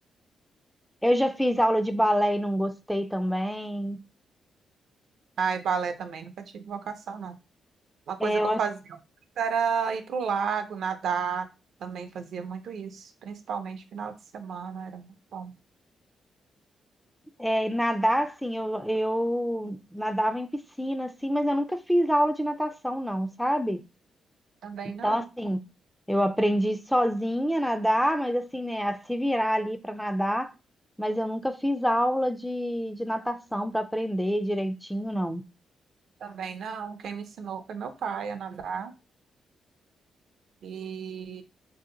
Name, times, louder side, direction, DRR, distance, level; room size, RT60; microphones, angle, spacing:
voice 1, 1.0-4.0 8.2-8.6 17.4-23.8 25.0-25.6 26.1-30.5 31.0-35.4, equal, ahead, 0.3 m, -26 dB
voice 2, 5.4-7.4 8.1-8.8 9.4-11.5 11.8-15.5 24.6-25.3 36.2-38.9 40.6-41.4, right 6 dB, 70° right, 0.4 m, -32 dB
2.7 x 2.0 x 3.7 m
cardioid pair, 95°, 0 cm